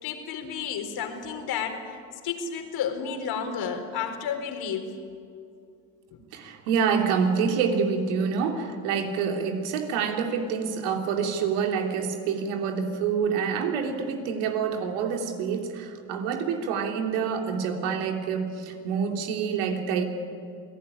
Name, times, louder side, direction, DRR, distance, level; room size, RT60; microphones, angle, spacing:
voice 1, 0.0-2.0 2.2-4.9 6.1-6.2, left 7 dB, 60° left, 6 dB, 4.2 m, -31 dB
voice 2, 6.3-20.0, right 6 dB, 80° right, 3 dB, 3.4 m, -27 dB
27.5 x 18.0 x 9.9 m, 2.5 s
supercardioid pair, 80°, 41 cm